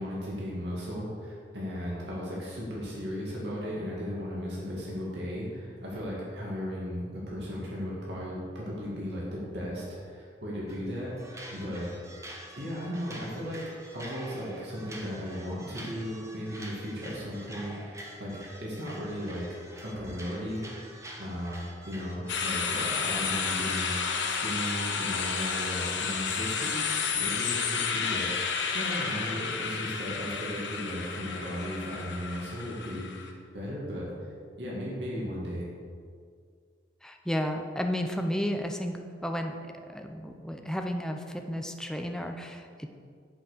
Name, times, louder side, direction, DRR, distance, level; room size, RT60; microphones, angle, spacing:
voice 1, 0.0-11.1 11.5-11.9 12.5-13.6 13.9-18.3 18.6-19.5 19.8-20.6 21.2-26.8 27.1-34.3 34.6-35.7, equal, 65° right, -6 dB, 2.3 m, -36 dB
sound 1, 10.7-10.9 11.2-24.9, right 1 dB, 15° right, 1.0 m, -47 dB
sound 2, 22.3-33.3, left 5 dB, 85° left, 1.0 m, -31 dB
voice 2, 37.0-39.6 39.9-42.9, equal, 5° left, 4 dB, 0.6 m, -32 dB
8.1 x 5.5 x 6.7 m, 2.1 s
head